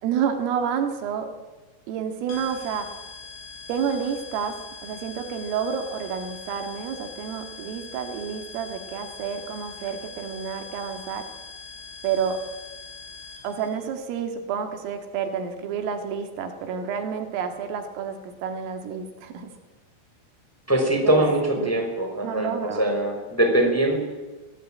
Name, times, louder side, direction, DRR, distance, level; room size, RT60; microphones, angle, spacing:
voice 1, 0.0-1.3 1.9-2.9 3.7-4.6 4.8-11.2 12.0-12.4 13.4-19.5 21.0-21.2 21.6-21.7 22.2-22.9, right 7 dB, 75° right, 6 dB, 4.6 m, -29 dB
sound 1, 2.3-13.7, left 4 dB, 65° left, 7.0 m, -42 dB
voice 2, 20.7-24.0, right 1 dB, 5° left, 3 dB, 4.2 m, -22 dB
25.0 x 18.0 x 8.8 m, 1.2 s
omnidirectional pair, 6.0 m